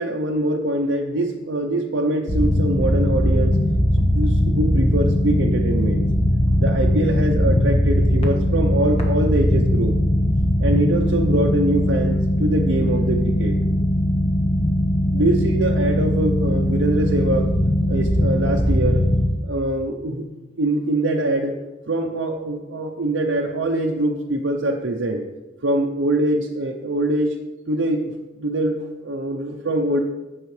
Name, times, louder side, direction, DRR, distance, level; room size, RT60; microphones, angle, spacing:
voice 1, 0.0-3.6 4.1-6.1 6.6-9.9 10.6-13.6 15.1-17.5 17.9-19.0 19.4-20.3 20.6-21.6 21.9-25.2 25.6-27.4 27.7-30.0, right 1 dB, 75° right, 0 dB, 0.7 m, -23 dB
sound 1, 2.3-19.3, left 1 dB, 35° left, 1.3 m, -20 dB
15.0 x 5.6 x 3.2 m, 1.1 s
head